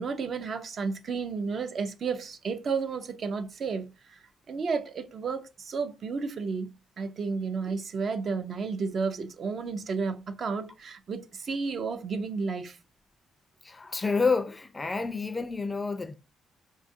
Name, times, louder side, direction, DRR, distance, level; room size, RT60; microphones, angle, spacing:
voice 1, 0.0-4.2 4.5-12.8, right 5 dB, 50° right, 0.5 m, -32 dB
voice 2, 13.6-16.1, left 4 dB, 20° left, 0.4 m, -29 dB
4.6 x 2.3 x 2.6 m
cardioid pair, 90°, 0 cm